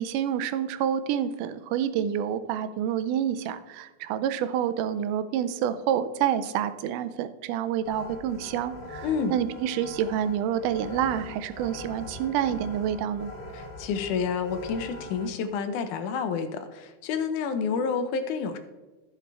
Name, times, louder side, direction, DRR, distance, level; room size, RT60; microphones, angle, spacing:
voice 1, 0.0-13.3, right 9 dB, 90° right, 12 dB, 2.2 m, -28 dB
sound 1, 7.8-15.3, left 1 dB, 60° left, 0.6 m, -42 dB
voice 2, 9.0-9.3 13.5-18.6, left 6 dB, 80° left, 9 dB, 2.2 m, -29 dB
14.0 x 6.0 x 3.4 m, 1.2 s
omnidirectional pair, 3.6 m